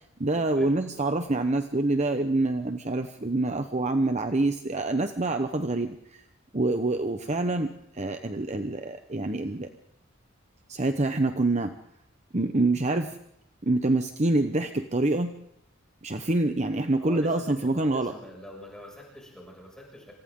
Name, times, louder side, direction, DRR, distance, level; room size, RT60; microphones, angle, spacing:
voice 1, 0.2-6.2 6.5-9.7 10.7-11.7 12.3-13.2 13.6-15.3 16.0-18.1, right 2 dB, 35° right, 7 dB, 1.1 m, -26 dB
voice 2, 17.0-20.1, left 1 dB, 5° left, -2 dB, 6.7 m, -44 dB
28.0 x 26.5 x 3.9 m, 0.77 s
head